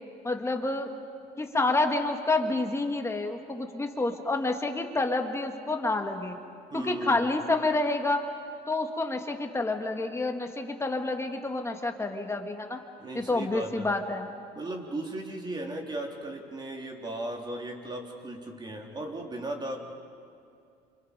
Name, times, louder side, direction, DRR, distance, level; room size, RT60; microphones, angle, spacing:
voice 1, 0.2-0.9 1.4-6.4 6.7-8.2 8.7-12.8 13.1-14.3, left 2 dB, 15° left, 4 dB, 2.1 m, -28 dB
voice 2, 6.7-7.2 13.0-13.9 14.5-19.8, right 2 dB, 25° right, 1 dB, 3.5 m, -36 dB
28.5 x 27.5 x 5.3 m, 2.5 s
cardioid pair, 110°, 17 cm